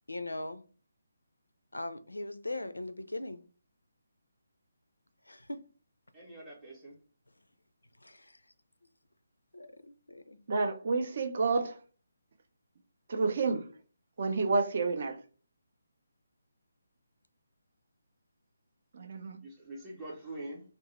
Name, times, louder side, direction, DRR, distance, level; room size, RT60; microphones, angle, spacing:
voice 1, 0.1-0.6 1.7-3.4 5.3-5.6 8.0-8.3 9.5-10.4 13.1-13.3, left 2 dB, 80° left, 0.4 m, -40 dB
voice 2, 6.1-7.0 19.4-20.6, right 1 dB, 5° right, 0.7 m, -44 dB
voice 3, 10.5-11.8 13.1-13.7 14.2-15.2 18.9-19.4, right 4 dB, 45° right, 0.4 m, -29 dB
2.6 x 2.0 x 3.0 m
figure-of-eight pair, 145°, 0 cm